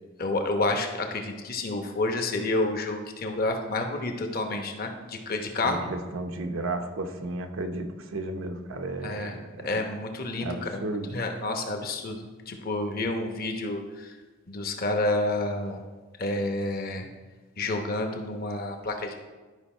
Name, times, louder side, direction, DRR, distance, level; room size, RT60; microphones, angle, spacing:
voice 1, 0.2-5.9 9.0-9.4 9.6-10.8 11.1-14.1 14.5-15.8 16.2-17.1 17.6-19.1, left 2 dB, 50° left, 4 dB, 1.0 m, -29 dB
voice 2, 5.6-9.8 10.4-11.1, right 2 dB, 85° right, 5 dB, 0.8 m, -33 dB
11.5 x 5.4 x 4.4 m, 1.3 s
head